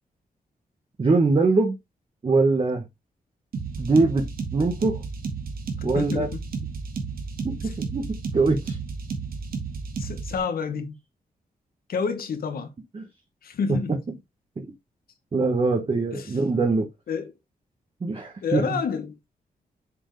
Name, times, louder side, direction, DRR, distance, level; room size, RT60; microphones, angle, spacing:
voice 1, 1.0-1.8 2.2-2.9 3.8-4.3 4.5-5.0 5.8-6.3 7.4-8.8 12.9-13.0 13.7-13.8 14.6-14.7 15.3-16.9 18.0-18.8, right 3 dB, 35° right, 1.4 m, -23 dB
sound 1, 3.5-10.4, right 5 dB, 75° right, 1.9 m, -32 dB
voice 2, 5.8-6.3 10.0-11.0 11.9-12.7 13.4-13.9 16.1-16.2 17.1-17.3 18.4-19.2, left 5 dB, 80° left, 1.4 m, -28 dB
7.3 x 4.5 x 3.3 m
wide cardioid pair, 110°, 15 cm